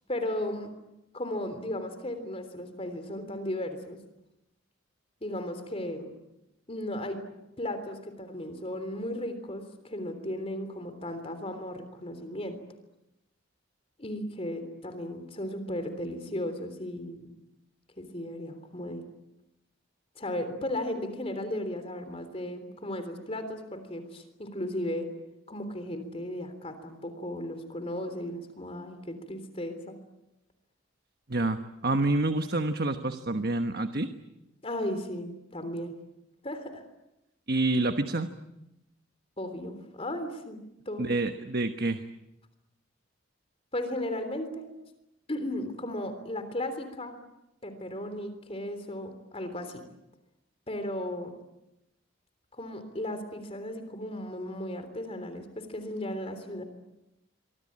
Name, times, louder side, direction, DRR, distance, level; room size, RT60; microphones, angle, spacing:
voice 1, 0.1-0.7 1.1-4.0 5.2-6.1 6.7-7.2 7.6-12.6 14.0-17.4 18.0-19.1 20.2-25.1 25.5-29.9 34.6-35.9 36.4-36.8 39.4-40.6 40.9-41.1 43.7-44.7 45.3-47.2 47.6-49.8 50.7-51.3 52.5-56.6, left 1 dB, 30° left, 8 dB, 3.4 m, -35 dB
voice 2, 31.3-34.1 37.5-38.3 41.0-42.0, right 2 dB, 50° right, 8 dB, 1.2 m, -28 dB
26.5 x 24.0 x 8.8 m, 0.91 s
head